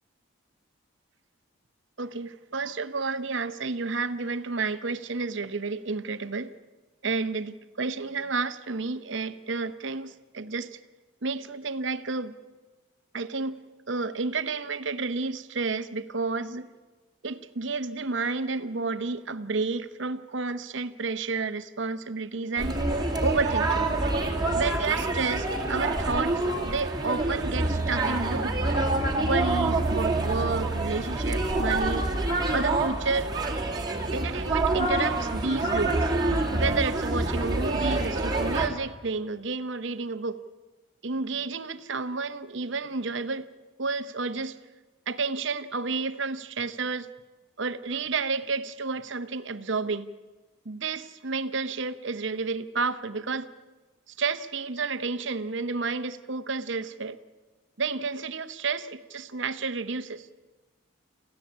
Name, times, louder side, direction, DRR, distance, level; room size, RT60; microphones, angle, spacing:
voice 1, 2.0-6.5 7.0-10.8 11.2-12.4 13.1-13.6 13.9-16.7 17.2-22.8 23.2-23.9 24.5-28.6 29.2-32.1 32.5-33.3 34.1-36.1 36.5-40.4 41.0-43.5 43.8-44.6 45.1-47.1 47.6-50.1 50.6-53.5 54.1-57.2 57.8-60.3, right 4 dB, 60° right, 12 dB, 0.9 m, -31 dB
sound 1, 22.6-38.7, right 2 dB, 20° right, 2.0 m, -27 dB
26.0 x 15.5 x 8.6 m, 1.3 s
head